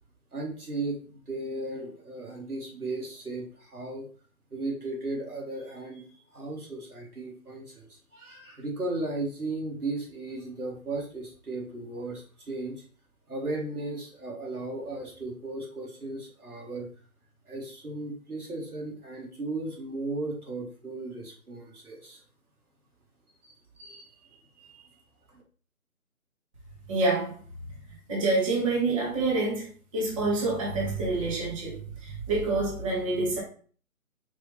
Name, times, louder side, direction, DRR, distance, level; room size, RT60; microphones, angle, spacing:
voice 1, 0.3-1.0 1.3-4.1 4.5-12.8 13.3-16.9 17.5-22.2 23.4-24.9 25.3-25.4, right 2 dB, 90° right, -2 dB, 2.2 m, -36 dB
voice 2, 26.9-27.3 28.1-33.4, right 3 dB, 25° right, -5 dB, 1.1 m, -27 dB
4.7 x 3.0 x 3.3 m, 0.42 s
figure-of-eight pair, 155°, 43 cm